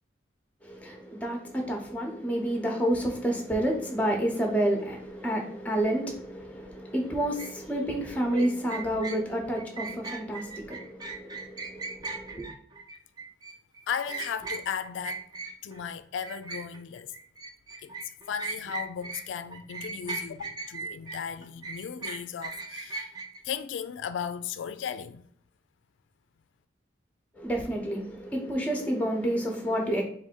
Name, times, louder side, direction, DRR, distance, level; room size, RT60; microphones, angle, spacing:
voice 1, 0.6-12.5 27.3-30.0, right 1 dB, 5° left, 0.8 m, -29 dB
sound 1, 7.4-7.5 8.3-15.8 16.2-19.2 19.5-23.4, right 4 dB, 20° right, 0.4 m, -38 dB
voice 2, 13.9-15.3 15.6-17.1 17.8-17.9 18.3-23.1 23.4-25.2, left 7 dB, 80° left, 0.3 m, -36 dB
3.3 x 2.5 x 4.4 m
head